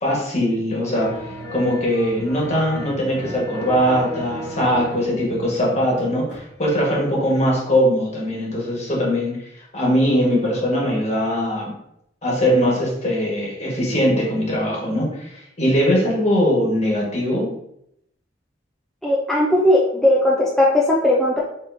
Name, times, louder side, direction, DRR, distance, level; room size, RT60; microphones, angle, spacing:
voice 1, 0.0-11.8 12.2-17.5, equal, 40° left, -3 dB, 1.3 m, -21 dB
sound 1, 0.9-6.5 6.7-6.8, right 1 dB, 75° left, 1.5 m, -35 dB
voice 2, 19.0-21.4, left 1 dB, ahead, -6 dB, 0.4 m, -17 dB
3.9 x 3.6 x 2.6 m, 0.77 s
head